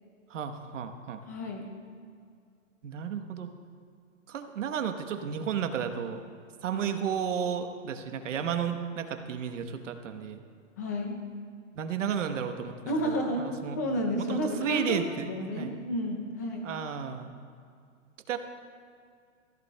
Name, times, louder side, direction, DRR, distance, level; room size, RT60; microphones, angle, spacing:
voice 1, 0.3-1.2 2.8-3.5 4.3-6.2 6.6-10.4 11.7-13.8 14.2-15.8 16.6-17.3 18.3-18.4, right 8 dB, 65° right, 7 dB, 1.1 m, -33 dB
voice 2, 1.3-1.6 10.8-11.1 12.9-16.7, equal, 15° left, 2 dB, 0.5 m, -31 dB
21.0 x 15.0 x 2.2 m, 2.3 s
hypercardioid pair, 165°, 40 cm